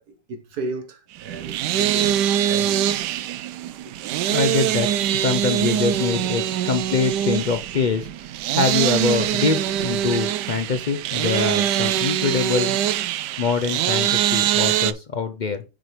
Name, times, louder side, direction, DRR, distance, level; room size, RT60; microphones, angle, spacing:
voice 1, 0.0-2.8 6.4-6.6, right 2 dB, 65° right, 1.6 m, -34 dB
sound 1, 1.2-14.9, right 11 dB, 85° right, 1.2 m, -23 dB
voice 2, 4.3-12.8 13.4-15.6, left 5 dB, 75° left, 0.4 m, -24 dB
6.1 x 4.6 x 4.9 m
omnidirectional pair, 1.8 m